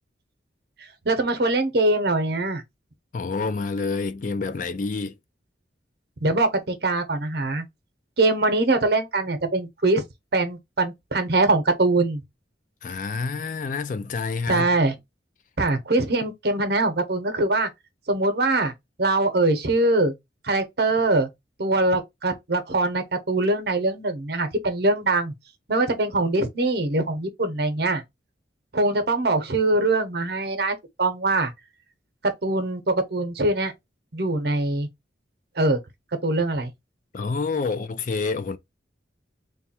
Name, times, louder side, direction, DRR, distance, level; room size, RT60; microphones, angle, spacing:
voice 1, 1.0-2.6 6.2-7.6 8.2-10.0 10.3-12.2 14.5-14.9 15.6-17.7 18.1-18.7 19.0-20.1 20.4-21.3 21.6-25.3 25.7-28.0 28.7-31.5 32.4-33.7 34.1-34.9 35.6-35.8 36.2-36.7, right 2 dB, 60° right, 0.8 m, -22 dB
voice 2, 3.1-5.2 12.8-14.7 37.1-38.6, left 4 dB, 45° left, 0.4 m, -28 dB
3.4 x 2.3 x 4.2 m
head